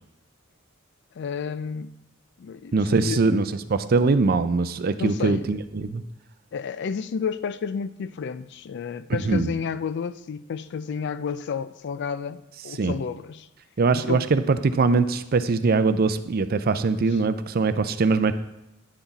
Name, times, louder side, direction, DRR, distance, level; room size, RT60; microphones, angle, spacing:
voice 1, 1.2-1.9 2.4-3.2 5.0-5.5 6.5-13.5 14.0-14.3, left 6 dB, 55° left, 0.4 m, -31 dB
voice 2, 2.7-3.4 3.7-6.0 9.1-9.5 12.8-12.9 13.8-18.3, right 4 dB, 45° right, 0.5 m, -22 dB
10.0 x 5.9 x 4.1 m
head